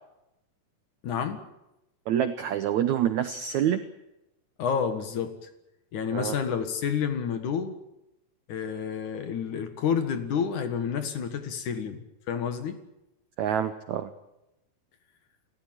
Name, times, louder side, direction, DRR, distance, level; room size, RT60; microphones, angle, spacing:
voice 1, 1.0-1.4 4.6-5.5 5.9-7.8 8.5-12.0 12.3-12.8, left 7 dB, 60° left, 8 dB, 2.8 m, -29 dB
voice 2, 2.1-3.8 6.1-6.3 13.4-14.1, right 10 dB, 75° right, 10 dB, 1.7 m, -26 dB
29.0 x 14.5 x 9.0 m, 0.92 s
omnidirectional pair, 4.4 m